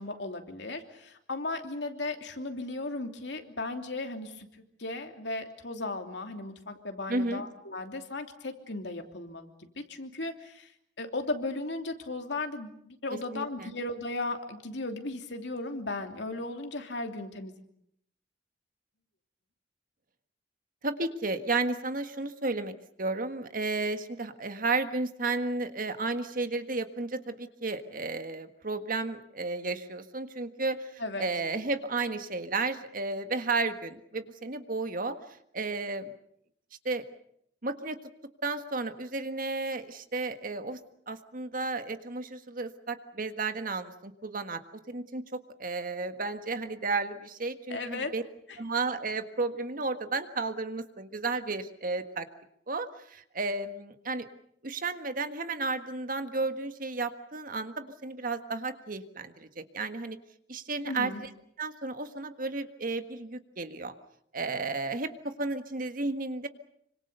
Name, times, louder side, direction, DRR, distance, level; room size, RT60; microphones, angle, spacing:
voice 1, 0.0-4.5 4.8-10.7 11.0-17.6 31.0-31.3 47.7-48.1 48.5-48.6 60.9-61.2, left 2 dB, 75° left, 5 dB, 3.0 m, -36 dB
voice 2, 7.1-7.4 13.3-13.7 20.8-22.7 23.0-35.2 35.5-36.1 36.9-37.0 37.6-38.0 38.4-40.8 41.1-44.6 44.9-48.2 48.6-52.3 52.7-54.3 54.6-60.2 60.5-61.3 61.6-63.9 64.3-66.5, right 3 dB, 50° right, 9 dB, 1.7 m, -33 dB
26.5 x 25.5 x 6.8 m, 0.71 s
head